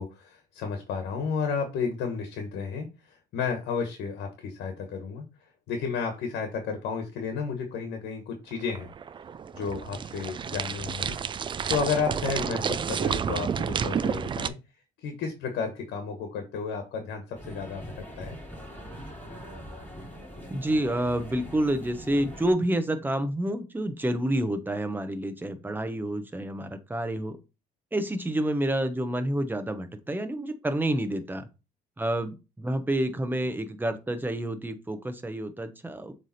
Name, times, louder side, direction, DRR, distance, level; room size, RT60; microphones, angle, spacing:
voice 1, 0.0-5.2 5.7-8.9 9.5-11.2 11.7-14.5 15.0-18.4, left 5 dB, 75° left, 6 dB, 1.3 m, -32 dB
sound 1, 8.5-14.5, right 7 dB, 30° right, 0.4 m, -30 dB
sound 2, 17.3-22.5, equal, 10° left, 4.0 m, -42 dB
voice 2, 20.5-27.4 27.9-31.5 32.0-36.1, right 1 dB, 10° right, 8 dB, 1.0 m, -29 dB
7.2 x 3.4 x 4.2 m, 0.29 s
cardioid pair, 110°, 17 cm